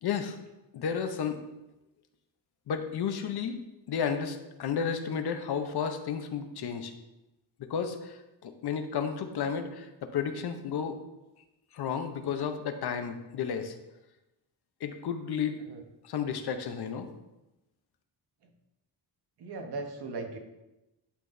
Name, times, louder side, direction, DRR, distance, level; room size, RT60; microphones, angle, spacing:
voice 1, 0.0-0.4 0.7-1.4 2.7-3.6 3.9-6.9 7.7-8.2 8.4-11.0 11.7-13.8 14.8-15.6 16.0-17.1, left 7 dB, 60° left, 7 dB, 0.8 m, -32 dB
voice 2, 19.4-20.4, right 3 dB, 65° right, 4 dB, 1.1 m, -37 dB
11.0 x 5.9 x 2.6 m, 0.98 s
wide cardioid pair, 165°, 43 cm